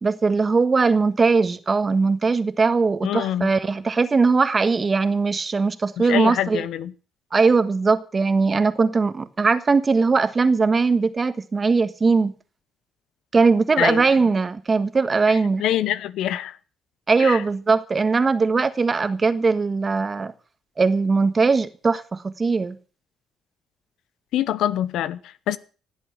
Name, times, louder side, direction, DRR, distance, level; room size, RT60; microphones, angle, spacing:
voice 1, 0.0-6.6 7.3-12.3 13.3-15.6 17.1-20.3 20.8-22.8, right 4 dB, 30° right, 1.5 m, -20 dB
voice 2, 3.0-3.5 6.0-6.9 13.8-14.1 15.3-16.6 17.2-17.4 24.3-25.6, left 11 dB, 85° left, 0.9 m, -25 dB
17.0 x 8.3 x 7.9 m
cardioid pair, 90°, 0 cm